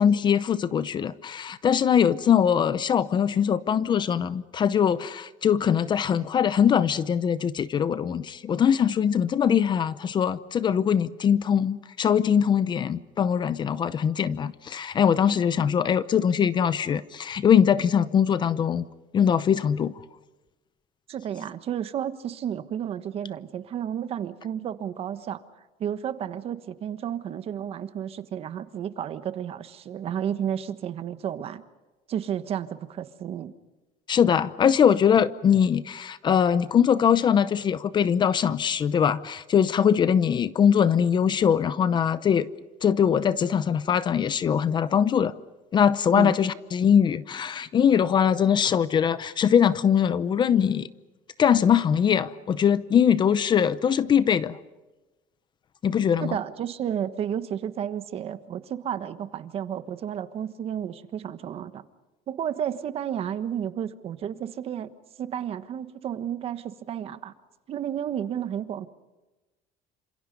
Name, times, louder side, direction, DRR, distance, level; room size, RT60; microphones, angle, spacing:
voice 1, 0.0-18.8 19.1-19.9 34.1-42.5 42.8-45.3 45.7-50.9 51.4-54.6 55.8-56.4, left 8 dB, 30° left, 0.7 m, -22 dB
voice 2, 21.1-25.4 25.8-31.6 32.1-33.5 46.1-46.3 56.2-61.8 62.3-64.9 65.2-67.3 67.7-68.9, right 9 dB, 40° right, 1.3 m, -32 dB
28.5 x 27.0 x 5.4 m
cardioid pair, 155°, 15 cm